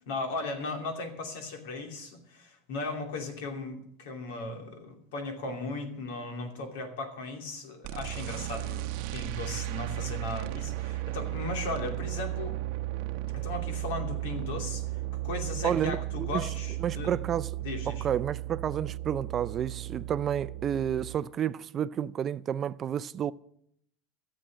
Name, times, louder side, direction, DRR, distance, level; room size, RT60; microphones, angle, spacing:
voice 1, 0.1-12.6 13.3-17.1 17.6-18.0, left 3 dB, 85° left, 2.7 m, -37 dB
sound 1, 7.8-21.2, right 16 dB, 65° right, 0.8 m, -35 dB
voice 2, 15.6-16.5 16.8-17.5 17.9-23.3, right 9 dB, 30° right, 0.4 m, -30 dB
14.0 x 7.6 x 7.4 m
supercardioid pair, 140°, 0 cm